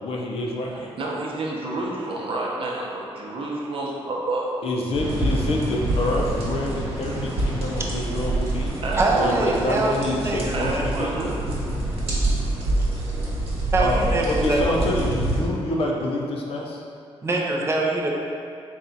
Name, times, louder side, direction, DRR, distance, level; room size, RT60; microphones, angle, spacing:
voice 1, 0.0-0.9 4.6-8.8 9.1-11.2 13.8-16.8, left 1 dB, 65° left, -1 dB, 0.6 m, -27 dB
voice 2, 0.7-4.6 8.8-9.5 10.5-11.6, right 2 dB, 60° right, -3 dB, 0.7 m, -29 dB
sound 1, 4.9-15.4, right 1 dB, 75° right, 1.3 m, -26 dB
voice 3, 8.9-10.4 10.7-11.1 13.7-14.8 17.2-18.1, right 2 dB, 25° right, -2 dB, 0.5 m, -24 dB
4.1 x 2.3 x 4.0 m, 2.5 s
cardioid pair, 115°, 10 cm